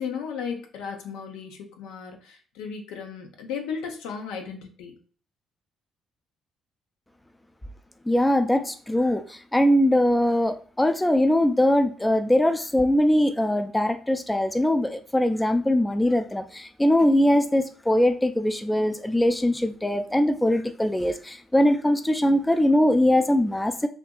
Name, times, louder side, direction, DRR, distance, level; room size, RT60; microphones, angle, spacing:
voice 1, 0.0-5.0, left 6 dB, 85° left, 3 dB, 0.5 m, -35 dB
voice 2, 8.1-23.9, left 1 dB, 10° left, 8 dB, 0.3 m, -21 dB
2.6 x 2.4 x 2.2 m, 0.43 s
supercardioid pair, 60°, 0 cm